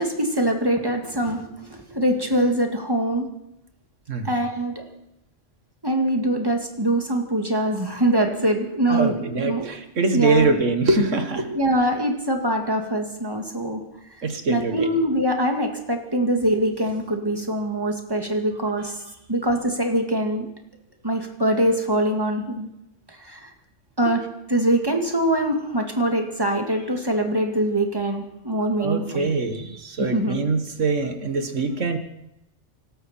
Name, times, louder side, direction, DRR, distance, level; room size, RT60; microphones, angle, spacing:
voice 1, 0.0-3.3 4.2-4.8 5.8-9.7 10.1-10.5 11.5-13.8 14.5-19.0 19.3-20.5 21.0-22.7 23.1-23.5 24.0-29.3 30.1-30.4, right 1 dB, 20° right, 3 dB, 2.1 m, -23 dB
voice 2, 8.9-11.6 14.2-14.9 18.8-18.9 24.0-24.2 28.8-32.0, right 3 dB, 85° right, 7 dB, 2.0 m, -23 dB
25.0 x 13.0 x 4.4 m, 0.84 s
omnidirectional pair, 1.2 m